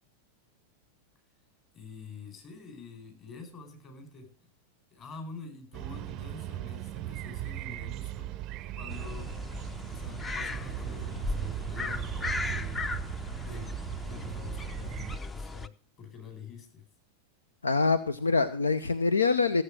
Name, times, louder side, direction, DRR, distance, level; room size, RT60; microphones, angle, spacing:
voice 1, 1.7-4.3 4.9-12.9 13.2-13.8 14.1-15.7 16.0-16.9, left 5 dB, 30° left, 5 dB, 4.6 m, -46 dB
sound 1, 5.7-15.2, right 14 dB, 35° right, 0.5 m, -38 dB
sound 2, 8.9-15.7, left 3 dB, 15° left, 0.6 m, -37 dB
voice 2, 17.6-19.6, left 4 dB, 75° left, 13 dB, 0.6 m, -25 dB
15.0 x 7.9 x 6.2 m, 0.41 s
figure-of-eight pair, 90°, 0 cm